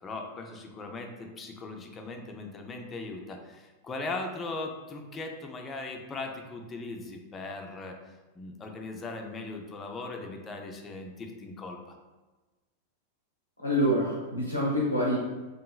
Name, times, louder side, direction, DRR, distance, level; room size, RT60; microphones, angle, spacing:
voice 1, 0.0-8.0 8.4-12.0, left 3 dB, 20° left, 3 dB, 0.4 m, -39 dB
voice 2, 13.6-15.2, equal, 90° left, -5 dB, 0.4 m, -26 dB
2.9 x 2.4 x 2.3 m, 1.2 s
figure-of-eight pair, 90°, 0 cm